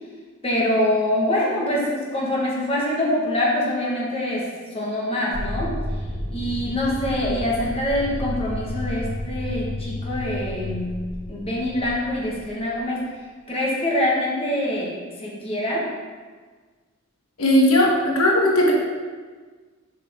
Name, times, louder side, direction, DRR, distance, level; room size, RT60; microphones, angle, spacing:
voice 1, 0.4-5.8 6.3-11.0 11.3-13.0 13.5-15.9, left 1 dB, 30° left, -5 dB, 1.5 m, -25 dB
sound 1, 5.3-12.8, left 1 dB, 65° right, 1.5 m, -31 dB
voice 2, 17.4-18.7, left 1 dB, 75° left, -2 dB, 1.3 m, -17 dB
7.3 x 5.8 x 3.6 m, 1.4 s
head